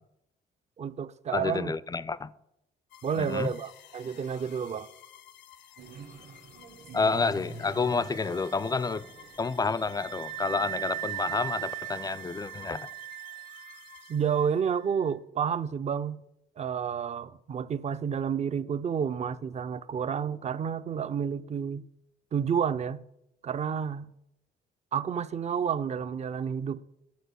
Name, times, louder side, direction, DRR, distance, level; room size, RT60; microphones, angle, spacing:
voice 1, 0.8-1.7 3.0-4.9 14.1-16.2 16.6-21.9 22.3-23.0 23.4-24.1 24.9-26.8, right 7 dB, 40° right, 0.4 m, -30 dB
voice 2, 1.3-2.3 3.2-3.5 6.9-9.0 9.4-12.9, left 4 dB, 20° left, 0.4 m, -29 dB
sound 1, 2.9-14.7, left 10 dB, 80° left, 0.8 m, -53 dB
sound 2, 5.8-11.6, right 3 dB, 55° right, 1.1 m, -48 dB
Wind instrument woodwind instrument, 7.7-15.1, right 15 dB, 85° right, 0.6 m, -40 dB
10.0 x 4.8 x 8.0 m
cardioid pair, 120°, 18 cm